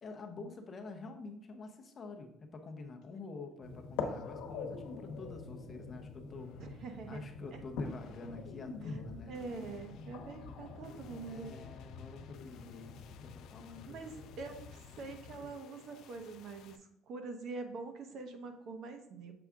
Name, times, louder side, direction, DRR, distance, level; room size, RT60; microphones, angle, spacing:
voice 1, 0.0-6.5 7.1-9.4 11.2-12.9 13.2-13.9, left 3 dB, 25° left, 4 dB, 0.7 m, -48 dB
sound 1, 3.0-3.2 3.6-4.3 4.8-5.3 6.3-7.0 7.8-16.8, left 9 dB, 55° left, 0.5 m, -60 dB
voice 2, 3.2-3.7 6.6-7.2 7.5-7.6 8.9-9.0 9.3-11.5 13.9-19.3, right 4 dB, 45° right, 6 dB, 0.8 m, -45 dB
sound 2, 3.6-15.5, left 4 dB, 80° left, 0.9 m, -45 dB
6.9 x 4.8 x 3.6 m, 0.76 s
cardioid pair, 170°, 0 cm